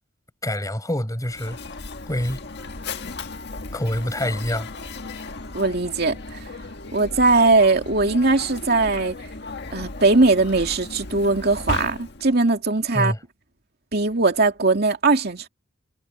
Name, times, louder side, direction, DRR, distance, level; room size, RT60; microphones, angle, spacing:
voice 1, 0.4-1.6 2.1-2.4 3.7-4.7 12.9-13.2, left 1 dB, 15° left, 6.9 m, -26 dB
Mechanisms, 1.2-12.4, left 3 dB, 60° left, 1.7 m, -35 dB
voice 2, 5.5-6.4 6.9-9.2 9.7-13.1 13.9-15.5, right 3 dB, 55° right, 2.6 m, -20 dB
head